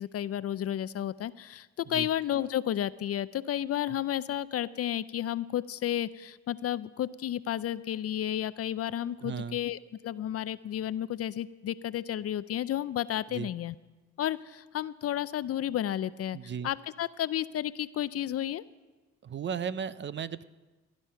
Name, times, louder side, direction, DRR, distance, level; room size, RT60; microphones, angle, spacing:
voice 1, 0.0-13.8 14.2-16.4 16.6-18.6, left 11 dB, 50° left, 16 dB, 0.5 m, -32 dB
voice 2, 9.2-9.6 13.3-13.5 16.3-16.7 19.2-20.4, right 7 dB, 40° right, 16 dB, 0.5 m, -35 dB
16.5 x 10.5 x 5.7 m, 1.2 s
cardioid pair, 90°, 30 cm